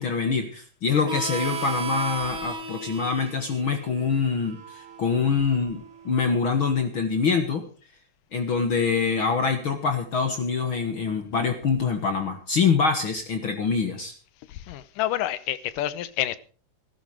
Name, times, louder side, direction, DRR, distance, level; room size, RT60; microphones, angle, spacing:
voice 1, 0.0-7.6 8.3-14.1, left 5 dB, 50° left, 1.8 m, -25 dB
Harmonica, 1.0-6.3, right 5 dB, 60° right, 0.7 m, -36 dB
voice 2, 14.5-16.4, left 13 dB, 90° left, 2.5 m, -28 dB
15.0 x 13.0 x 4.9 m
omnidirectional pair, 3.7 m